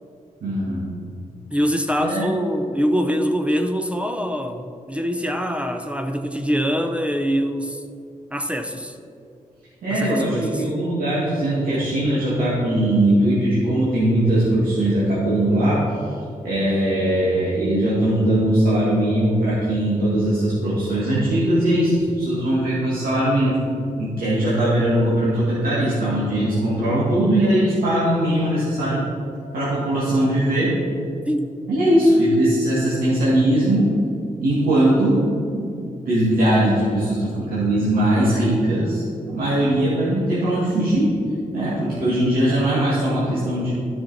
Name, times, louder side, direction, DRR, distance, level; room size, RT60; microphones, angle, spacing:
voice 1, 0.4-0.9 2.0-2.2 9.8-15.8 16.4-23.6 24.0-29.0 29.5-30.7 31.7-33.9 34.4-35.8 36.1-41.1 41.5-43.7, right 1 dB, 85° right, -9 dB, 2.2 m, -20 dB
voice 2, 1.5-7.8 8.3-8.9 9.9-10.6 31.3-31.5, equal, 10° right, 6 dB, 0.7 m, -24 dB
12.5 x 5.9 x 4.2 m, 2.5 s
cardioid pair, 60°, 15 cm